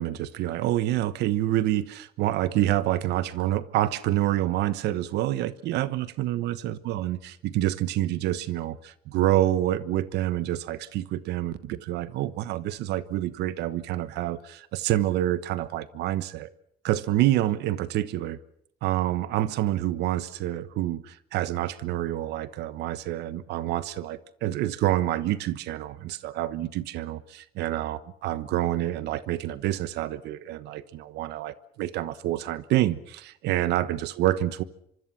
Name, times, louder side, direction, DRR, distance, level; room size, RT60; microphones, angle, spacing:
voice 1, 0.0-16.5 16.8-18.4 18.8-34.6, right 14 dB, 80° right, 1.2 m, -27 dB
25.5 x 25.0 x 6.0 m
cardioid pair, 110°, 17 cm